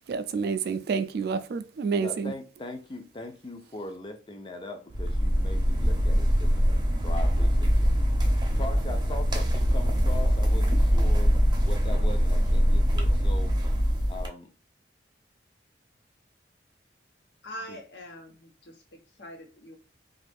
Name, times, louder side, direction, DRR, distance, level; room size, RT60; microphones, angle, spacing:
voice 1, 0.1-2.3, right 5 dB, 60° right, 0.3 m, -28 dB
voice 2, 2.0-7.9 8.6-11.3 11.6-13.5 14.1-14.5 17.7-17.8, left 2 dB, 30° left, 0.5 m, -40 dB
sound 1, 4.9-14.3, equal, 25° right, 0.6 m, -23 dB
voice 3, 17.4-19.8, equal, 75° left, 0.9 m, -43 dB
2.5 x 2.4 x 3.4 m
head